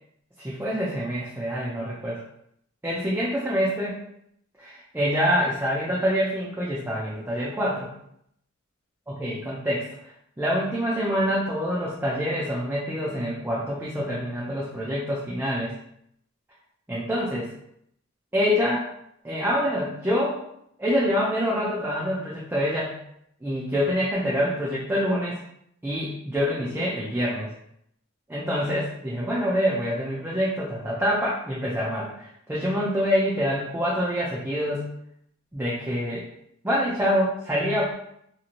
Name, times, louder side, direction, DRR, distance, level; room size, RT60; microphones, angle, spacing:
voice 1, 0.4-2.2 2.8-4.0 4.6-7.9 9.1-9.9 10.4-15.7 16.9-17.5 18.3-18.9 19.2-20.4 20.8-23.0 23.4-25.4 25.8-27.5 28.3-34.9 35.5-36.2 36.6-37.9, equal, 10° right, -6 dB, 0.4 m, -26 dB
2.9 x 2.7 x 2.5 m, 0.73 s
head